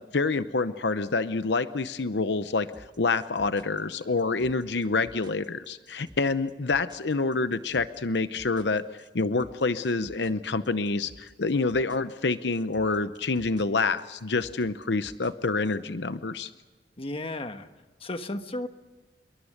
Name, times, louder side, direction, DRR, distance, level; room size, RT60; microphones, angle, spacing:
voice 1, 0.0-2.7 3.0-8.8 9.1-16.5, left 3 dB, 75° left, 12 dB, 0.8 m, -27 dB
sound 1, 2.7-15.9, right 1 dB, 25° right, 1.6 m, -52 dB
voice 2, 17.0-17.7 18.0-18.7, left 1 dB, 35° left, 8 dB, 1.3 m, -34 dB
27.5 x 22.5 x 6.6 m, 1.2 s
head